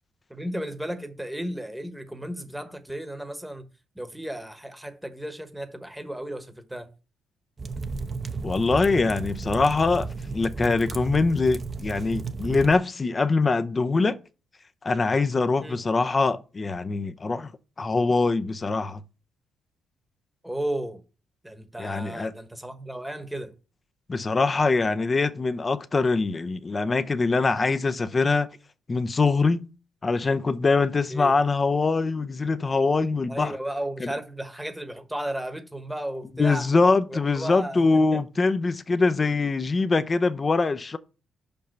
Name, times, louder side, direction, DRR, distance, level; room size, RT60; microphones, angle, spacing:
voice 1, 0.3-3.6 3.9-6.9 15.6-15.8 20.4-21.0 21.4-23.5 31.1-31.4 33.3-36.7 37.1-38.2, right 1 dB, 5° right, 1.1 m, -34 dB
sound 1, 7.6-12.8, right 4 dB, 35° right, 0.7 m, -33 dB
voice 2, 8.4-14.2 14.8-17.5 17.8-19.0 21.8-22.3 24.1-28.5 28.9-29.7 30.0-33.5 34.0-34.1 36.4-41.0, left 3 dB, 30° left, 0.6 m, -23 dB
5.5 x 5.3 x 5.9 m
cardioid pair, 90°, 0 cm